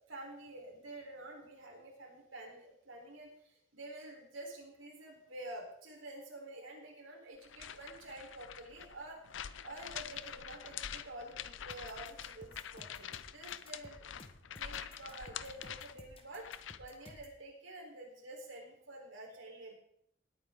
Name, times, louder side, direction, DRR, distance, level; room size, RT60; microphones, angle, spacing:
voice 1, 0.1-9.2 9.6-14.1 14.5-16.5 16.8-19.7, right 1 dB, 90° right, 0 dB, 4.4 m, -49 dB
sound 1, 7.4-16.9, left 9 dB, 80° left, 0.6 m, -46 dB
sound 2, 11.7-17.4, left 1 dB, 30° left, 1.5 m, -55 dB
19.0 x 9.2 x 3.9 m, 0.70 s
head